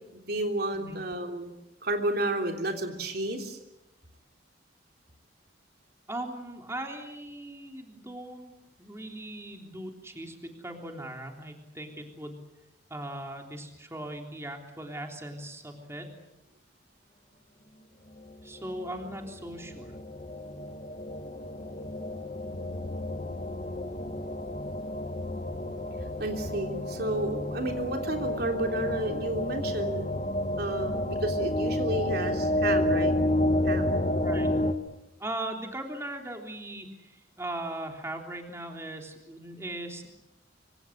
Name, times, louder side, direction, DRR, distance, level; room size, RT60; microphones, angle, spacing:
voice 1, 0.3-1.5 1.8-3.6 26.0-30.1 30.6-33.2 33.7-34.0, right 1 dB, 55° right, 3 dB, 3.4 m, -31 dB
voice 2, 6.1-8.5 8.8-12.4 12.9-16.1 18.4-19.9 34.2-34.5 35.2-40.1, right 1 dB, 15° right, 3 dB, 3.5 m, -39 dB
sound 1, 18.6-34.7, left 1 dB, 40° left, 1.7 m, -30 dB
26.0 x 26.0 x 8.0 m, 0.91 s
head